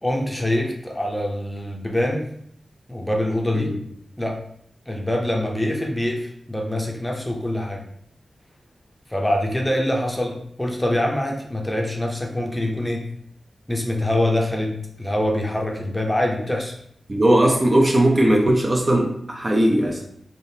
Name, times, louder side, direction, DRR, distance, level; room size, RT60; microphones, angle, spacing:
voice 1, 0.0-2.3 2.9-3.7 4.2-4.4 4.9-7.8 9.1-13.1 13.7-14.7 15.0-16.7, left 1 dB, 10° left, 0 dB, 0.6 m, -24 dB
voice 2, 17.1-20.0, right 1 dB, 30° right, 0 dB, 0.5 m, -18 dB
3.5 x 2.3 x 2.7 m, 0.67 s
wide cardioid pair, 75°, 0 cm